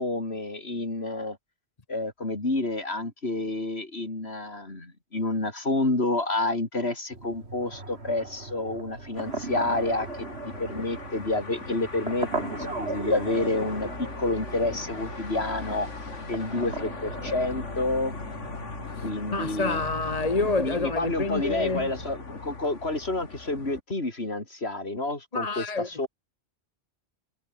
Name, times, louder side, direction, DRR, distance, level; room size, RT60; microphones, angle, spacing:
voice 1, 0.0-1.4 1.9-15.9 16.2-18.1 19.0-19.8 20.6-26.1, left 2 dB, 60° left, 4.4 m, -29 dB
sound 1, 7.1-22.1, right 3 dB, 60° right, 3.7 m, -39 dB
sound 2, 9.1-23.8, left 3 dB, 85° left, 3.3 m, -39 dB
voice 2, 19.3-21.9 25.3-26.1, left 3 dB, 35° left, 1.5 m, -28 dB
omnidirectional pair, 1.2 m